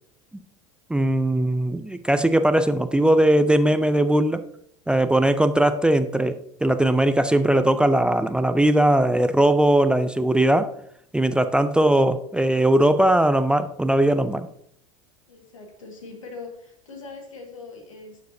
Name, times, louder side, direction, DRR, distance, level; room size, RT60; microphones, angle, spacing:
voice 1, 0.9-4.4 4.9-10.7 11.1-14.5, right 1 dB, 5° right, 10 dB, 0.4 m, -19 dB
voice 2, 15.3-18.2, left 4 dB, 90° left, 3 dB, 1.7 m, -41 dB
11.5 x 4.7 x 2.7 m, 0.67 s
hypercardioid pair, 85°, 16 cm